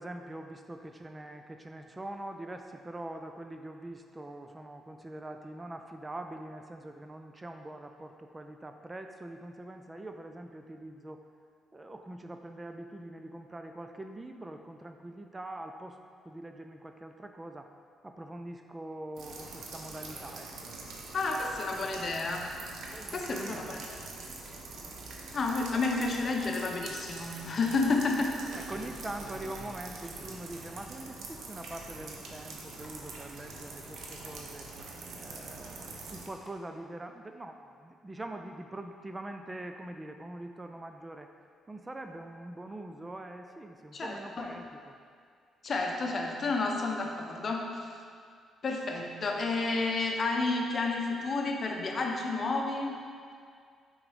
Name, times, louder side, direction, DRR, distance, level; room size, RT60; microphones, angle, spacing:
voice 1, 0.0-11.2 11.7-16.0 16.3-17.7 18.0-20.7 22.9-23.9 28.5-34.7 35.2-41.3 41.7-45.0, right 1 dB, 20° right, 5 dB, 0.4 m, -43 dB
sound 1, 19.2-36.3, right 3 dB, 70° right, 0.8 m, -44 dB
voice 2, 21.1-22.6 23.1-24.1 25.3-28.4 43.9-44.5 45.6-47.9 48.6-53.0, left 3 dB, 45° left, 2 dB, 0.8 m, -31 dB
sound 2, 28.6-30.6 31.2-31.3 32.5-32.6 32.8-33.2 34.1-34.4 35.9-36.6, left 1 dB, 10° left, 0.7 m, -52 dB
5.9 x 3.9 x 4.9 m, 2.2 s
cardioid pair, 90°, 0 cm